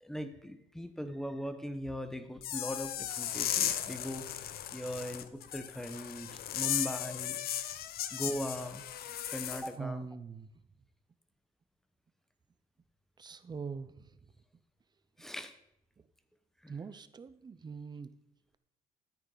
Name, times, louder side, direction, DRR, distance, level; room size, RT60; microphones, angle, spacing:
voice 1, 0.0-7.4 8.1-8.8 9.3-10.1 15.2-15.5 16.6-16.8, equal, 5° left, 9 dB, 1.1 m, -40 dB
sound 1, 2.4-9.7, left 11 dB, 75° left, 0.8 m, -36 dB
voice 2, 9.8-10.5 13.2-13.9 16.7-18.1, right 5 dB, 25° right, 13 dB, 0.7 m, -42 dB
13.5 x 8.7 x 4.0 m, 0.80 s
cardioid pair, 125°, 16 cm